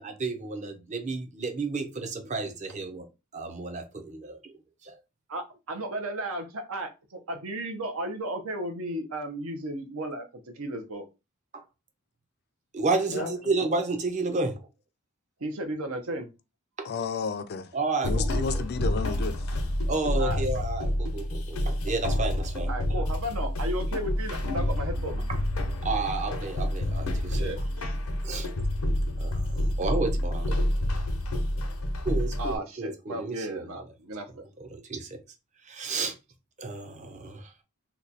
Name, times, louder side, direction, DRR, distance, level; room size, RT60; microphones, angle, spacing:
voice 1, 0.0-3.1 3.3-4.4 4.8-4.9 11.5-11.6 12.7-14.6 17.7-18.6 19.9-22.7 25.8-27.5 28.2-28.5 29.2-30.4 32.0-33.8 34.7-35.2 35.7-36.1 36.6-37.5, right 3 dB, 35° right, 0.6 m, -31 dB
voice 2, 5.3-11.0 13.1-13.3 15.4-16.3 20.2-20.4 22.7-25.3 27.3-28.0 32.4-34.5, right 1 dB, 80° right, 0.8 m, -34 dB
voice 3, 13.1-13.5 16.9-17.7 18.0-19.6, left 5 dB, 50° left, 0.4 m, -32 dB
sound 1, 18.0-32.6, left 1 dB, 90° left, 0.7 m, -28 dB
2.9 x 2.3 x 3.9 m
head